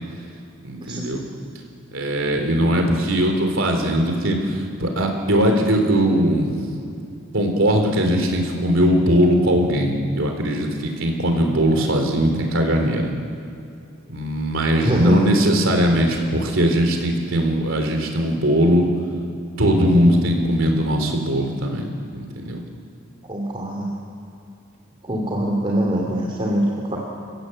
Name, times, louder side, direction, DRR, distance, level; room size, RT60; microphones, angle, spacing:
voice 1, 0.6-1.2 1.9-6.7 7.3-13.1 14.1-18.9 19.6-21.9 22.1-22.6 25.2-25.3, equal, 70° right, 3 dB, 3.7 m, -20 dB
voice 2, 14.8-15.2 23.3-23.9 25.0-27.0, right 1 dB, 25° right, -2 dB, 2.9 m, -23 dB
29.0 x 16.5 x 8.0 m, 2.6 s
head